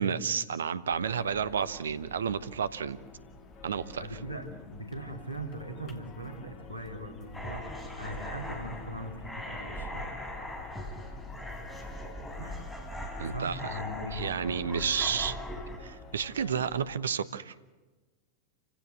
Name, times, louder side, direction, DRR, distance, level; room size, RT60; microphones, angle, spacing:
voice 1, 0.0-3.0 3.6-4.0 13.2-13.7 14.1-15.4 15.8-17.5, right 7 dB, 65° right, 14 dB, 1.0 m, -31 dB
sound 1, 0.9-16.9, left 4 dB, 30° left, 2.5 m, -50 dB
voice 2, 4.0-10.2 12.4-12.6 13.3-14.3, right 1 dB, 85° left, 5 dB, 2.9 m, -40 dB
sound 2, 7.3-15.8, left 1 dB, 10° left, 4.3 m, -40 dB
28.0 x 16.5 x 8.4 m, 1.2 s
figure-of-eight pair, 90°, 0 cm